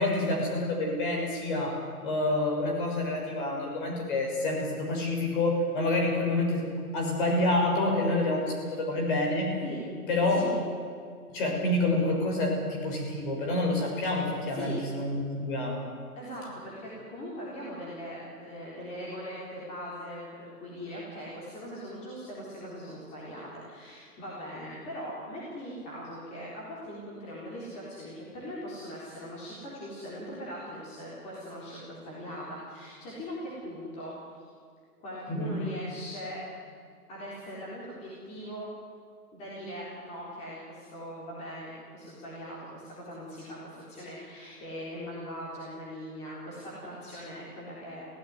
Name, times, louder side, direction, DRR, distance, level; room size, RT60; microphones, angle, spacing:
voice 1, 0.0-1.8 2.0-6.6 6.9-9.5 10.1-10.4 11.3-15.9 35.3-35.5, left 2 dB, 30° left, 0 dB, 6.5 m, -28 dB
voice 2, 14.5-14.8 16.2-34.5 35.0-36.5 37.1-38.7 39.3-48.2, equal, 15° left, -7 dB, 3.9 m, -40 dB
24.0 x 16.5 x 9.6 m, 2.1 s
hypercardioid pair, 160°, 47 cm